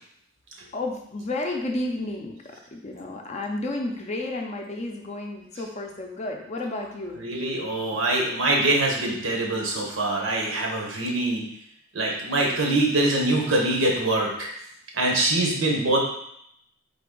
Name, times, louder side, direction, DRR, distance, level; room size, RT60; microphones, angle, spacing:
voice 1, 0.7-7.2, left 2 dB, 35° left, 2 dB, 0.4 m, -32 dB
voice 2, 7.2-11.5 11.9-14.5 14.9-16.0, right 2 dB, 85° right, -1 dB, 1.0 m, -24 dB
3.8 x 3.4 x 3.7 m, 0.73 s
head